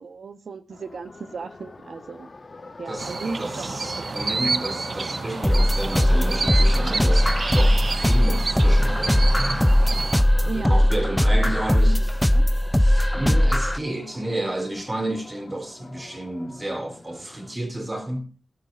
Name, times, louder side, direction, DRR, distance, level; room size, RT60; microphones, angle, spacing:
voice 1, 0.0-2.3 2.8-3.8 4.1-4.2 10.4-11.2 11.7-12.4, right 4 dB, 80° right, 1.4 m, -36 dB
sound 1, 0.7-17.5, left 3 dB, 40° left, 1.6 m, -43 dB
sound 2, 3.0-10.2, right 4 dB, 55° right, 0.7 m, -29 dB
voice 2, 3.4-9.6 10.2-12.0 12.8-18.3, right 1 dB, 25° right, 4.0 m, -31 dB
sound 3, 5.4-13.8, left 1 dB, 5° left, 0.7 m, -19 dB
20.5 x 13.5 x 2.7 m
wide cardioid pair, 100°, 0 cm